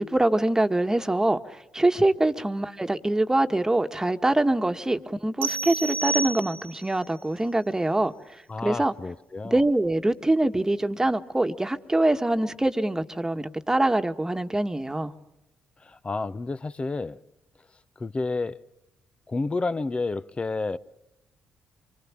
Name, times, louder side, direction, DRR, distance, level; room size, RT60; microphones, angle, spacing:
voice 1, 0.0-8.1 8.6-8.9 9.4-15.1, right 1 dB, 15° right, 1.6 m, -24 dB
sound 1, 5.4-6.9, right 4 dB, 60° right, 1.2 m, -30 dB
voice 2, 8.5-9.6 15.8-17.2 18.0-18.6 19.3-20.8, left 3 dB, 30° left, 1.0 m, -30 dB
26.0 x 24.0 x 7.4 m
hypercardioid pair, 50°, 4 cm